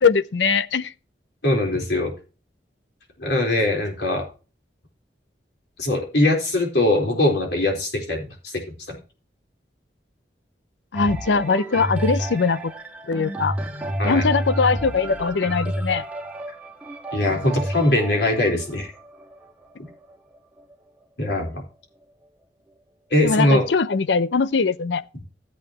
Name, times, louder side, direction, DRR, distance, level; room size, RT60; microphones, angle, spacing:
voice 1, 0.0-0.9 10.9-12.7 13.1-13.6 14.0-16.1 23.2-25.0, left 4 dB, 90° left, 0.6 m, -21 dB
voice 2, 1.4-2.1 3.2-4.2 5.8-8.5 14.0-14.2 17.1-18.9 21.2-21.6 23.1-23.6, left 1 dB, 70° left, 4.1 m, -21 dB
sound 1, 10.9-20.7 21.4-21.5, right 1 dB, 10° right, 1.6 m, -30 dB
14.0 x 8.8 x 3.0 m
head